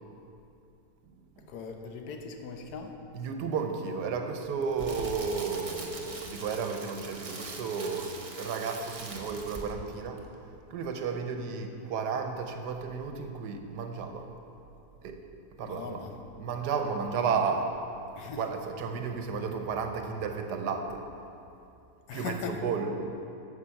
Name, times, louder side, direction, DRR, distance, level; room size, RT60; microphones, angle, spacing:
voice 1, 1.5-3.0 15.6-16.1 18.2-18.4 22.1-22.6, left 5 dB, 75° left, 4 dB, 1.3 m, -39 dB
voice 2, 3.1-10.2 10.7-14.3 15.0-15.2 15.6-16.0 16.4-17.7 18.3-21.0 22.1-22.9, right 5 dB, 90° right, 5 dB, 1.4 m, -33 dB
Crackle, 4.4-9.9 10.2-10.4, right 3 dB, 35° right, 0.5 m, -42 dB
9.4 x 6.7 x 5.8 m, 2.7 s
omnidirectional pair, 1.7 m